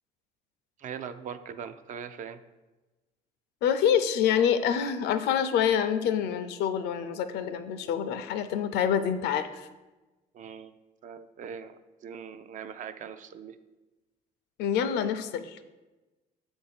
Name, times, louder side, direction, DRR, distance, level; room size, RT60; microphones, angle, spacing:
voice 1, 0.8-2.4 10.3-10.7 11.0-11.8 12.0-13.6, right 7 dB, 50° right, 11 dB, 0.4 m, -40 dB
voice 2, 3.6-9.7 14.6-15.6, left 8 dB, 80° left, 10 dB, 0.5 m, -26 dB
6.8 x 2.6 x 5.7 m, 1.1 s
cardioid pair, 110°, 17 cm